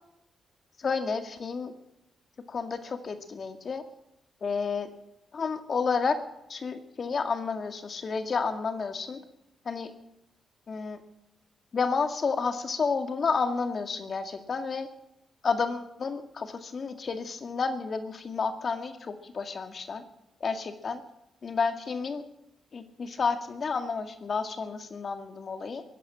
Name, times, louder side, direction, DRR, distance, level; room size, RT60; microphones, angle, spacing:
voice 1, 0.8-1.7 2.5-3.8 4.4-4.9 5.3-6.2 6.5-9.2 9.7-9.9 10.7-11.0 11.7-14.9 15.4-20.0 20.4-21.0 21.4-22.2 22.7-25.8, left 5 dB, 55° left, 8 dB, 2.0 m, -30 dB
17.0 x 10.5 x 7.5 m, 0.83 s
cardioid pair, 60°, 0 cm